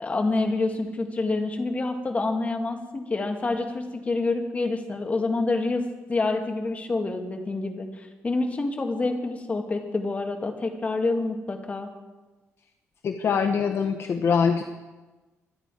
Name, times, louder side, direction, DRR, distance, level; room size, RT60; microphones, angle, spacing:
voice 1, 0.0-5.8 6.1-11.9, left 3 dB, 25° left, 3 dB, 2.0 m, -27 dB
voice 2, 13.0-14.6, left 6 dB, 50° left, 6 dB, 0.9 m, -23 dB
24.0 x 9.8 x 4.9 m, 1.2 s
cardioid pair, 125°, 5 cm